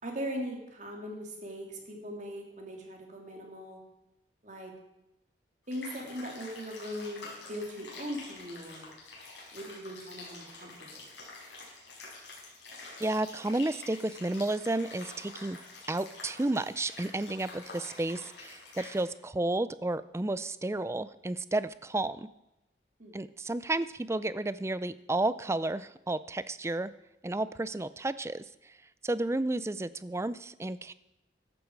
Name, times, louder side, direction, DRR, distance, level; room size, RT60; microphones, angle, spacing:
voice 1, 0.0-3.8 4.4-4.7 5.7-8.9 9.5-11.1 23.0-23.2, equal, 40° right, 1 dB, 2.9 m, -40 dB
sound 1, 5.7-19.0, left 3 dB, 75° left, 5.4 m, -47 dB
voice 2, 13.0-15.6 15.9-22.3 23.1-26.9 27.2-28.7 29.0-30.9, right 2 dB, 15° right, 15 dB, 0.4 m, -32 dB
14.5 x 11.5 x 4.7 m, 0.91 s
head